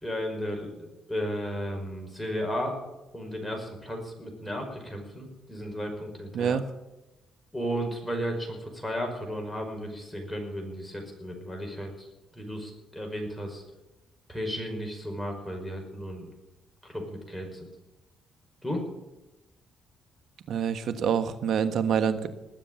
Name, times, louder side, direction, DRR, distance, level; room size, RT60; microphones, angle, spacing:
voice 1, 0.0-2.8 3.1-6.6 7.5-12.1 12.3-13.6 14.3-16.3 16.8-17.7 18.6-18.9, equal, 5° left, 1 dB, 5.3 m, -34 dB
voice 2, 20.5-22.3, right 7 dB, 70° right, 10 dB, 1.4 m, -26 dB
20.0 x 7.5 x 9.1 m, 0.98 s
cardioid pair, 90°, 0 cm